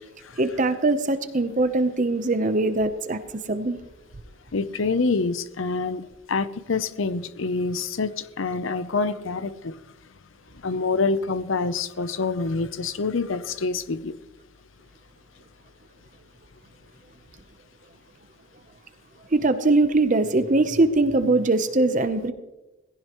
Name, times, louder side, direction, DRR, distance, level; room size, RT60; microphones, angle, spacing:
voice 1, 0.4-3.8 19.3-22.3, right 2 dB, 40° right, 10 dB, 0.8 m, -22 dB
voice 2, 4.5-9.7 10.6-14.1, left 4 dB, 75° left, 13 dB, 0.7 m, -26 dB
18.0 x 15.5 x 3.1 m, 1.1 s
head